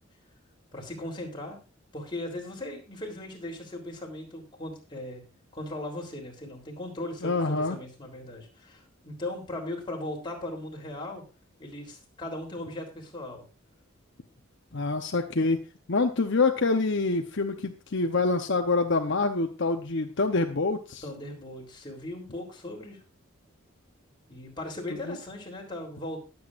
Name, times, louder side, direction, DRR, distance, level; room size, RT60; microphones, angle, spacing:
voice 1, 0.7-1.6 1.9-5.2 5.5-11.2 11.6-13.4 21.0-23.0 24.3-26.2, left 1 dB, 25° left, 0 dB, 3.5 m, -38 dB
voice 2, 7.2-7.8 14.7-15.6 15.9-21.0 25.1-25.2, left 3 dB, 60° left, 5 dB, 0.9 m, -26 dB
21.0 x 8.0 x 2.5 m, 0.31 s
head